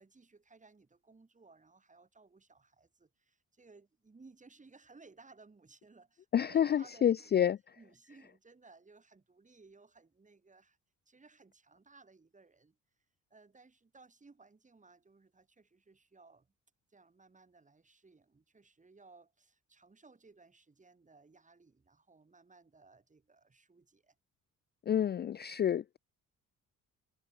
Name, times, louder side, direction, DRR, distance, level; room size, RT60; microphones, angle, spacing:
voice 1, 0.0-10.8 11.1-12.8 13.3-16.5 16.9-24.2, right 3 dB, 25° right, 5.9 m, -60 dB
voice 2, 6.3-7.6 24.9-26.0, left 9 dB, 35° left, 0.4 m, -28 dB
cardioid pair, 90°, 30 cm